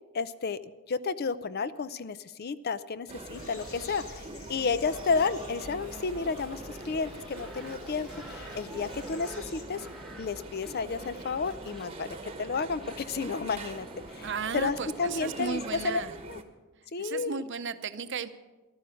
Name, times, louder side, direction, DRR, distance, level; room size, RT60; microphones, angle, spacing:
voice 1, 0.1-0.6 0.9-4.2 4.5-9.9 10.2-14.3 14.5-16.0 16.3-16.4 16.9-17.4, left 4 dB, 45° left, 15 dB, 0.5 m, -32 dB
sound 1, 3.1-16.4, right 2 dB, 25° right, 1.1 m, -44 dB
sound 2, 3.3-9.7, left 2 dB, 65° left, 2.2 m, -49 dB
sound 3, 4.9-16.0, equal, ahead, 1.4 m, -49 dB
voice 2, 14.2-16.1 17.0-18.3, right 5 dB, 55° right, 11 dB, 0.7 m, -35 dB
14.5 x 12.5 x 6.4 m, 1.2 s
head